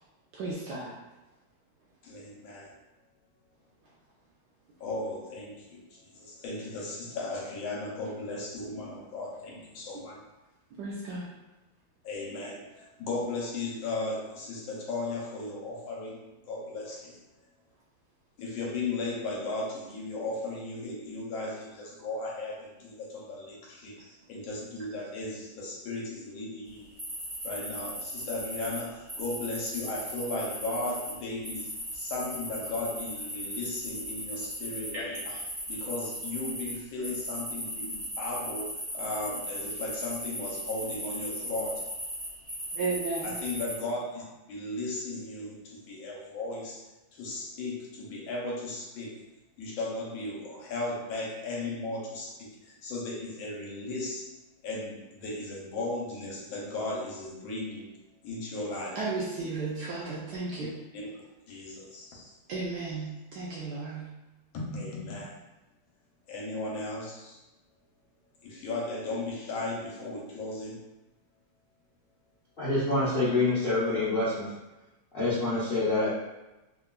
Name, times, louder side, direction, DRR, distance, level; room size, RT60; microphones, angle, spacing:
voice 1, 0.3-0.9 10.8-11.3 24.0-24.2 34.9-35.2 42.7-43.3 58.9-60.7 62.5-64.1, right 3 dB, 75° right, -5 dB, 1.0 m, -34 dB
voice 2, 2.0-2.7 4.8-10.2 12.0-17.2 18.4-23.9 24.3-26.8 27.4-35.3 35.7-38.7 38.9-41.9 43.2-46.9 47.1-49.1 49.6-54.4 54.6-57.9 58.2-59.0 60.9-61.1 61.5-62.3 64.5-65.3 66.3-67.4 68.4-70.8, left 2 dB, 85° left, -3 dB, 1.5 m, -36 dB
sound 1, 27.0-28.8 29.1-31.1 31.4-36.7 37.0-43.7, equal, 35° right, 0.4 m, -37 dB
voice 3, 72.6-74.5 75.1-76.1, left 2 dB, 70° left, -11 dB, 0.5 m, -26 dB
3.7 x 2.2 x 2.2 m, 1.0 s
omnidirectional pair, 2.2 m